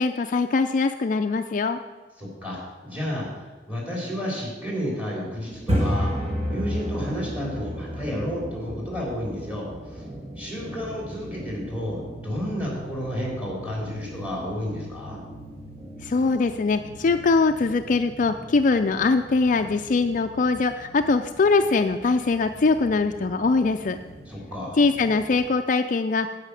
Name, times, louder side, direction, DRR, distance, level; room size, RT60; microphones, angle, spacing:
voice 1, 0.0-1.8 16.0-24.0 24.8-26.4, left 4 dB, 45° left, 8 dB, 0.4 m, -22 dB
voice 2, 2.2-6.2 6.5-10.0 10.4-15.2 24.3-24.8, equal, 10° right, -3 dB, 3.5 m, -31 dB
sound 1, 5.5-25.4, equal, 35° right, 2.0 m, -35 dB
9.8 x 5.7 x 8.3 m, 1.3 s
head